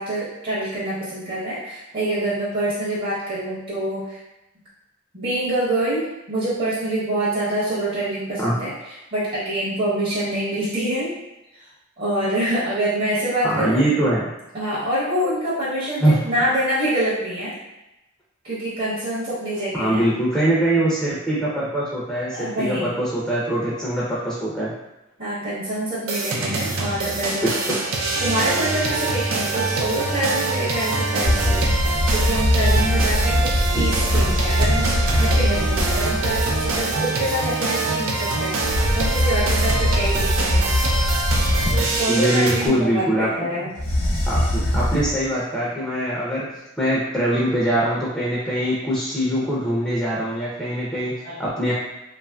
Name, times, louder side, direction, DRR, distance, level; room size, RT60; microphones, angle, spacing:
voice 1, 0.0-4.2 5.1-11.1 12.0-13.9 14.5-17.5 18.4-20.1 22.3-22.9 25.2-27.5 28.2-40.7 41.7-43.7 51.2-51.4, right 1 dB, 50° right, -10 dB, 0.8 m, -26 dB
voice 2, 13.4-14.3 16.0-16.2 19.7-24.7 42.1-43.3 44.3-46.5 46.8-51.1 51.4-51.7, right 1 dB, 5° left, -8 dB, 0.5 m, -22 dB
sound 1, 26.1-42.7, right 3 dB, 90° right, 0.4 m, -25 dB
sound 2, 31.2-36.8 38.6-42.1 43.8-45.2, left 1 dB, 70° left, 0.8 m, -21 dB
2.9 x 2.5 x 2.2 m, 0.94 s
head